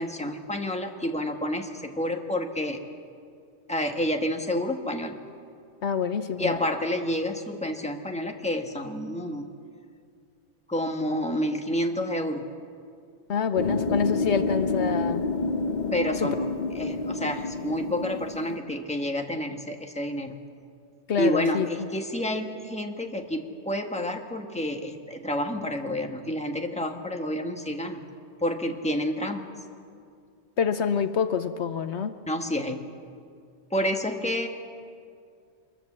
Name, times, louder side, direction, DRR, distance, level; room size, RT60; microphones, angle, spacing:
voice 1, 0.0-2.8 3.7-5.2 6.4-9.5 10.7-12.4 15.9-16.5 16.7-20.4 21.2-28.0 28.4-29.5 32.3-32.9 33.7-34.5, left 1 dB, 5° left, 3 dB, 1.5 m, -29 dB
voice 2, 5.8-6.6 13.3-15.3 16.2-16.3 21.1-21.7 30.6-32.1, left 7 dB, 70° left, 10 dB, 1.0 m, -26 dB
sound 1, 13.6-18.6, left 3 dB, 45° left, 0.9 m, -28 dB
25.0 x 21.5 x 7.5 m, 2.3 s
omnidirectional pair, 1.2 m